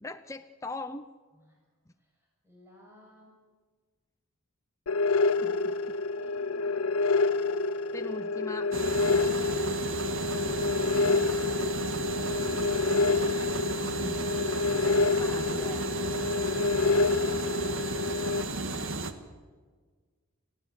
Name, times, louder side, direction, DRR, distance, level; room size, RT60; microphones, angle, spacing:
voice 1, 0.0-1.1 5.4-5.8 7.9-8.7 13.7-14.3 14.8-15.8, left 2 dB, 15° left, 6 dB, 0.7 m, -41 dB
voice 2, 2.0-3.4 5.3-5.8 6.1-7.0, left 1 dB, 10° right, -2 dB, 6.5 m, -58 dB
sound 1, 4.9-18.4, left 3 dB, 80° left, 0.7 m, -28 dB
sound 2, 8.7-19.1, right 3 dB, 65° right, 1.8 m, -34 dB
29.5 x 15.5 x 9.6 m, 1.5 s
head